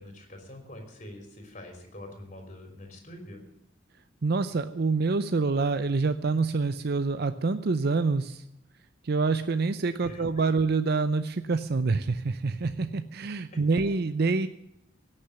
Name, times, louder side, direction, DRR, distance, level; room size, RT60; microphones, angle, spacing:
voice 1, 0.0-3.4 10.0-10.2, left 1 dB, 40° left, 3 dB, 3.5 m, -45 dB
voice 2, 4.2-8.4 9.0-14.5, right 4 dB, 55° right, 10 dB, 0.6 m, -26 dB
17.0 x 6.6 x 9.9 m, 0.82 s
head